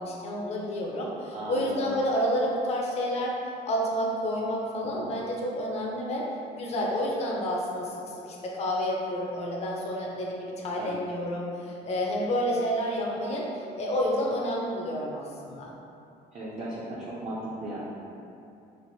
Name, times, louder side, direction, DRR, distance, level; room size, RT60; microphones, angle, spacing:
voice 1, 0.0-3.4 3.7-6.3 6.6-7.9 8.3-15.7, equal, 40° left, -3 dB, 0.5 m, -29 dB
voice 2, 1.3-1.8 4.8-5.2 10.7-11.0 16.3-17.8, right 1 dB, 35° right, -9 dB, 0.5 m, -36 dB
3.2 x 2.5 x 2.6 m, 2.6 s
cardioid pair, 110°, 17 cm